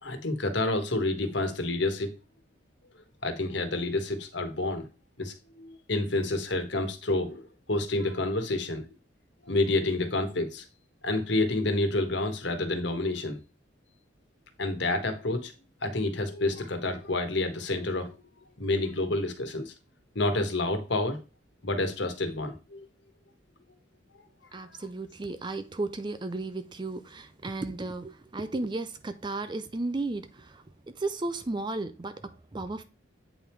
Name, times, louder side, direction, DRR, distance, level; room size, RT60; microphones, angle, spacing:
voice 1, 0.0-2.1 3.2-4.9 5.2-9.0 9.4-10.6 11.0-13.4 14.6-15.5 15.8-18.1 18.6-19.7 20.1-21.2 21.6-22.8 24.4-24.6, left 2 dB, 65° left, 1.5 m, -29 dB
voice 2, 24.5-32.8, right 2 dB, 25° right, 0.5 m, -34 dB
8.3 x 3.6 x 4.6 m
head